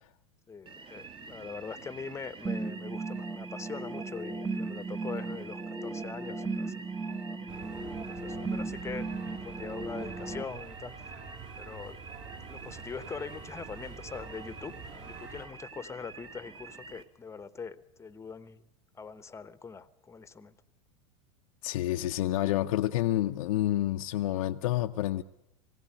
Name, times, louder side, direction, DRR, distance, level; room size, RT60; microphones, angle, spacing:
voice 1, 0.5-6.8 7.4-9.1 9.4-11.2 11.6-12.0 12.5-18.6 18.9-20.5, left 5 dB, 15° left, 1.0 m, -42 dB
sound 1, 0.7-17.0, right 4 dB, 25° right, 1.5 m, -48 dB
sound 2, 2.4-10.4, right 3 dB, 10° right, 1.1 m, -36 dB
sound 3, 7.5-15.5, right 4 dB, 50° right, 6.1 m, -47 dB
voice 2, 21.6-25.2, left 14 dB, 70° left, 0.7 m, -28 dB
20.0 x 16.5 x 8.9 m
hypercardioid pair, 105°, 18 cm